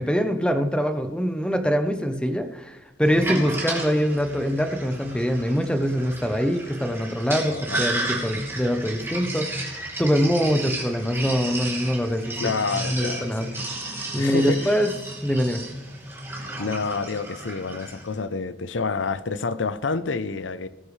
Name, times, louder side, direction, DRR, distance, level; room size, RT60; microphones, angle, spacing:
voice 1, 0.0-12.3 12.9-13.5 14.1-14.9 15.2-15.6, equal, 5° left, 0.8 m, -24 dB
Sink (filling or washing), 3.0-18.1, right 2 dB, 15° right, 3.2 m, -33 dB
voice 2, 7.4-7.9 12.4-13.7 14.2-14.8 16.4-20.7, left 4 dB, 85° left, 0.7 m, -29 dB
19.5 x 10.0 x 3.3 m
head